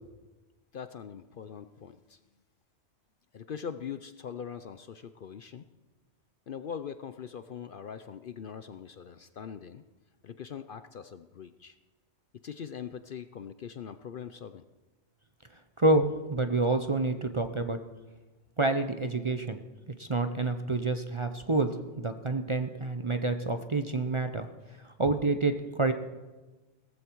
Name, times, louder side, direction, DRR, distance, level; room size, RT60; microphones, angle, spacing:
voice 1, 0.7-2.2 3.3-5.6 6.5-9.8 10.2-11.8 12.4-14.6, left 7 dB, 55° left, 11 dB, 0.7 m, -42 dB
voice 2, 15.8-17.8 18.6-19.6 20.0-21.7 22.0-24.5 24.8-25.9, right 2 dB, 30° right, 8 dB, 0.6 m, -28 dB
17.5 x 14.5 x 4.6 m, 1.2 s
omnidirectional pair, 1.2 m